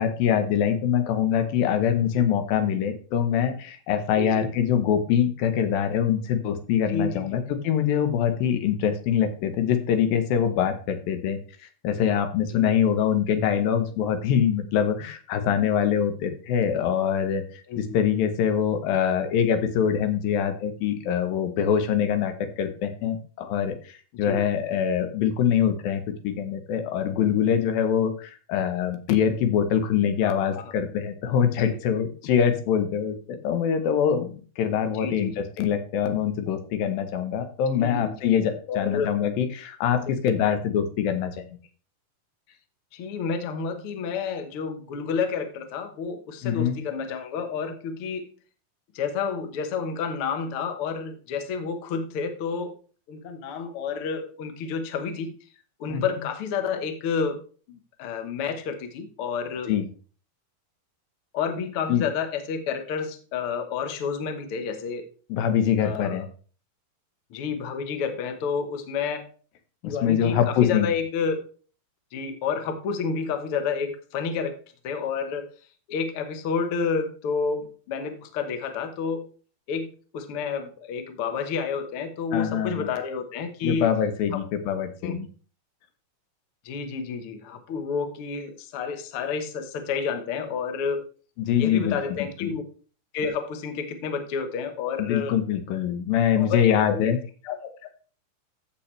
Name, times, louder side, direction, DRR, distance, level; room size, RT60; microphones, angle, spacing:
voice 1, 0.0-11.4 11.8-41.5 46.4-46.8 55.9-56.0 59.7-59.8 61.9-62.0 65.3-66.3 69.8-70.9 82.3-82.9 83.6-85.3 91.4-92.5 95.0-97.2, left 8 dB, 80° left, 9 dB, 2.8 m, -24 dB
voice 2, 4.2-4.5 6.9-7.4 12.5-12.7 17.7-18.0 24.2-24.4 30.2-30.7 31.6-31.8 35.0-35.4 37.7-38.3 38.7-39.1 40.1-40.2 42.9-48.3 48.9-52.7 53.1-55.3 55.8-57.4 57.7-59.7 61.3-65.0 65.8-66.3 67.3-69.3 69.8-71.4 72.1-74.6 74.8-75.5 75.9-79.3 79.7-83.9 84.3-84.5 85.0-85.3 86.6-91.0 91.6-92.6 93.1-95.3 96.3-97.1 97.4-97.6, left 5 dB, 60° left, 7 dB, 1.4 m, -30 dB
15.0 x 5.9 x 3.3 m, 0.39 s
omnidirectional pair, 4.1 m